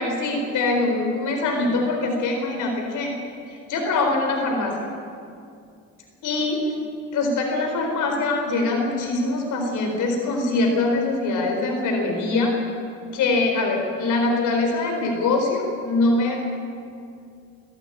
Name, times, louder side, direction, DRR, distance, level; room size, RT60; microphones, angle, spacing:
voice 1, 0.0-3.1 3.5-4.7 6.2-6.6 7.1-12.5 13.1-16.4, left 2 dB, 85° left, 2 dB, 4.4 m, -23 dB
24.5 x 13.5 x 9.9 m, 2.4 s
cardioid pair, 90°, 30 cm